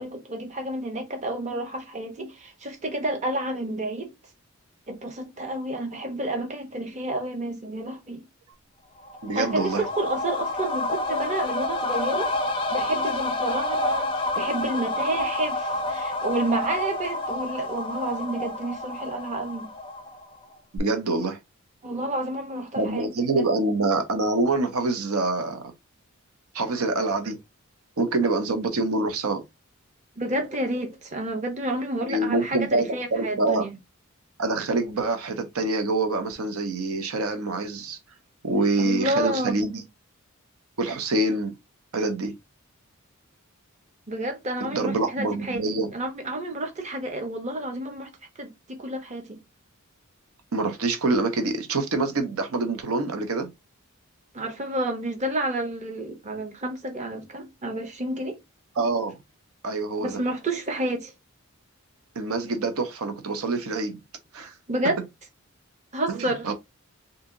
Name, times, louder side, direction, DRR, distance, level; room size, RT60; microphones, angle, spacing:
voice 1, 0.0-4.1 4.9-8.2 9.3-12.3 12.7-19.7 21.8-23.1 23.4-23.5 30.2-33.8 38.8-39.6 44.1-48.1 48.4-49.4 54.3-58.4 60.0-61.1 64.4-65.0 65.9-66.5, right 1 dB, 35° right, 0.8 m, -30 dB
sound 1, 9.0-20.4 20.8-20.9, left 2 dB, 25° left, 0.4 m, -29 dB
voice 2, 9.2-9.9 20.8-21.4 22.8-25.7 26.5-27.4 28.0-29.4 32.1-33.7 34.4-38.0 38.4-39.8 40.8-41.5 41.9-42.4 44.6-45.9 50.5-53.5 58.8-59.1 59.6-60.2 62.2-64.0 64.3-64.5 66.1-66.5, right 2 dB, 75° right, 0.6 m, -26 dB
2.7 x 2.6 x 3.6 m
head